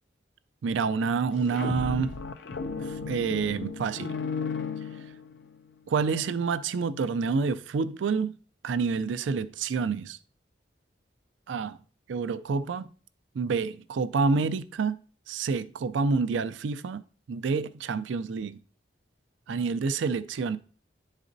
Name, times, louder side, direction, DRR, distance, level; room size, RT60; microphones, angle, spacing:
voice 1, 0.6-2.2 2.8-4.2 5.9-8.3 8.6-10.2 11.5-11.8 12.1-12.9 13.3-15.0 15.3-17.0 17.3-18.6 19.5-20.6, right 5 dB, 90° right, 0.4 m, -28 dB
sound 1, 1.3-5.6, left 5 dB, 70° left, 0.4 m, -34 dB
11.0 x 4.1 x 2.6 m
head